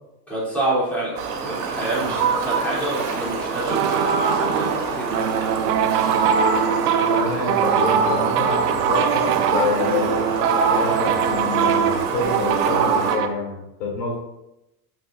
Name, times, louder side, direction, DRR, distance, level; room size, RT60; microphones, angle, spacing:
voice 1, 0.3-5.7, right 1 dB, 5° left, -10 dB, 3.5 m, -28 dB
Fowl, 1.2-13.1, right 4 dB, 45° right, 3.0 m, -24 dB
sound 1, 3.7-13.3, right 8 dB, 70° right, 1.1 m, -23 dB
voice 2, 7.1-10.2 10.7-14.2, left 4 dB, 80° left, -1 dB, 3.2 m, -27 dB
12.0 x 7.6 x 2.7 m, 0.90 s
supercardioid pair, 165°, 49 cm